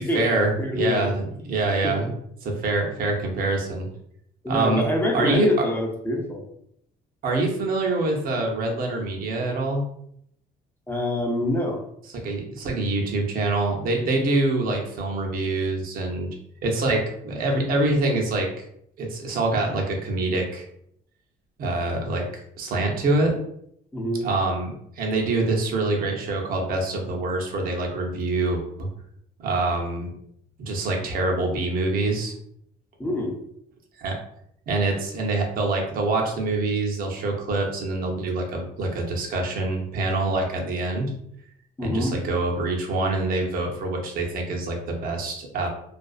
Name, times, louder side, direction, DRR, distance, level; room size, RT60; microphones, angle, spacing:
voice 1, 0.0-2.1 2.4-3.9 4.5-4.8 5.1-5.5 7.2-9.8 12.2-16.3 16.6-18.6 19.0-20.6 21.6-23.4 24.2-28.9 29.4-30.1 30.6-32.3 34.0-34.2 34.7-41.1 41.8-45.7, right 2 dB, 60° right, 1 dB, 0.7 m, -25 dB
voice 2, 0.6-1.1 1.8-1.9 4.4-6.4 10.9-11.8 23.9-24.2 33.0-33.3 41.8-42.1, left 1 dB, 10° left, 0 dB, 0.6 m, -25 dB
2.4 x 2.3 x 2.3 m, 0.72 s
cardioid pair, 110°, 17 cm